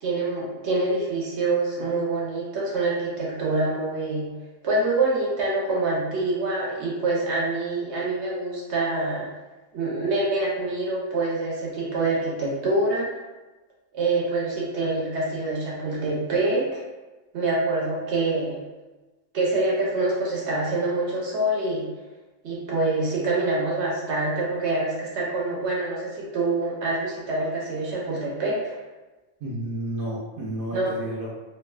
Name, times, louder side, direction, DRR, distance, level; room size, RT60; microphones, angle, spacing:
voice 1, 0.0-4.3 4.6-9.3 9.7-13.1 13.9-16.8 17.3-18.6 19.3-21.9 22.4-28.8 30.7-30.9, right 2 dB, 60° right, -5 dB, 0.9 m, -25 dB
voice 2, 29.4-31.3, right 1 dB, 80° right, -4 dB, 1.1 m, -31 dB
3.1 x 2.4 x 2.2 m, 1.2 s
omnidirectional pair, 1.5 m